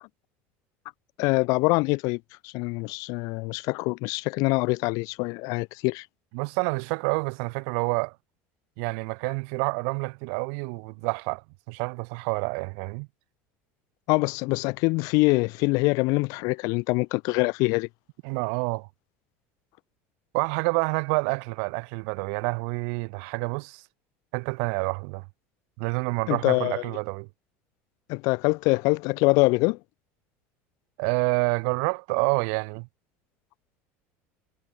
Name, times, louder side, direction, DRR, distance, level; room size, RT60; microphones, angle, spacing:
voice 1, 1.2-6.1 14.1-17.9 26.3-26.8 28.1-29.8, left 27 dB, 65° left, 0.4 m, -24 dB
voice 2, 6.3-8.1 8.8-13.1 18.2-18.9 20.3-23.8 24.3-25.2 25.8-27.3 31.0-32.9, right 40 dB or more, 75° right, 1.3 m, -28 dB
supercardioid pair, 115°, 6 cm